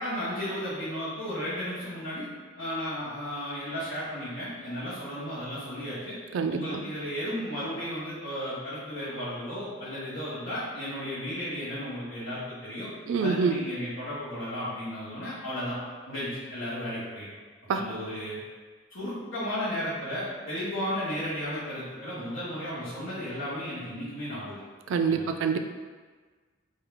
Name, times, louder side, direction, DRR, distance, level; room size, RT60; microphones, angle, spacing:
voice 1, 0.0-2.3 2.6-6.2 6.5-12.9 13.2-15.8 16.1-17.2 17.7-18.4 18.9-24.6 25.1-25.3, equal, 75° left, -14 dB, 1.5 m, -34 dB
voice 2, 13.1-13.6 17.7-17.8 24.9-25.6, right 5 dB, 85° right, 7 dB, 0.3 m, -25 dB
3.7 x 2.7 x 3.5 m, 1.4 s
head